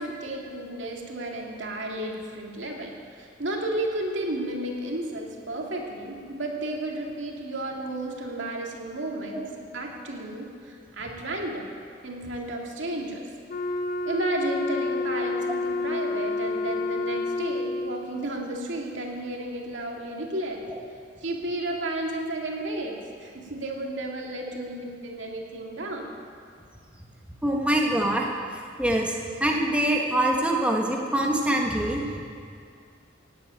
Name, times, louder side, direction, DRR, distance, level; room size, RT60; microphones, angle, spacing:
voice 1, 0.0-11.7 12.0-13.3 14.0-20.7 21.2-26.1, right 1 dB, 80° right, 0 dB, 2.3 m, -33 dB
Wind instrument woodwind instrument, 13.5-18.2, left 3 dB, 45° left, 0.9 m, -29 dB
voice 2, 27.4-28.2 28.8-29.1 29.4-32.2, right 1 dB, 5° right, -1 dB, 1.3 m, -24 dB
17.0 x 8.1 x 9.1 m, 2.3 s
head